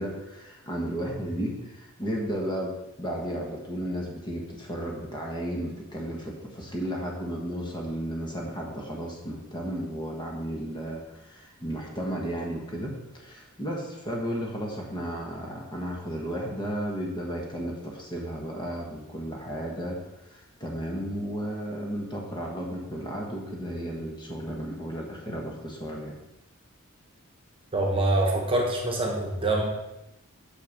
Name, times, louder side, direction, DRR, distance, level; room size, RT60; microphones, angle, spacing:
voice 1, 0.0-20.0 20.3-26.1, equal, 20° left, -1 dB, 1.3 m, -34 dB
voice 2, 27.7-29.6, right 2 dB, 25° right, 0 dB, 1.4 m, -25 dB
6.7 x 6.4 x 5.4 m, 0.96 s
head